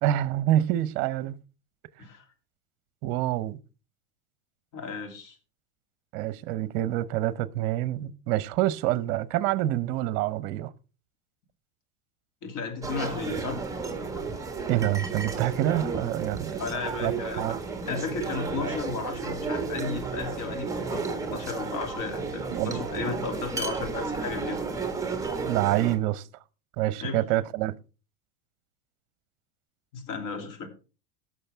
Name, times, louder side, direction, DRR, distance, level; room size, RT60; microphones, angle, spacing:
voice 1, 0.0-1.4 3.0-3.6 6.1-10.7 14.7-16.6 17.0-17.6 22.5-23.1 25.4-26.2 26.8-27.7, right 14 dB, 50° right, 0.9 m, -27 dB
voice 2, 4.7-5.4 12.4-13.6 16.6-17.5 17.9-24.6 27.0-27.2 29.9-30.7, left 5 dB, 40° left, 3.1 m, -34 dB
sound 1, 12.8-26.0, right 4 dB, 5° right, 1.6 m, -32 dB
17.5 x 6.3 x 3.5 m
hypercardioid pair, 115°, 47 cm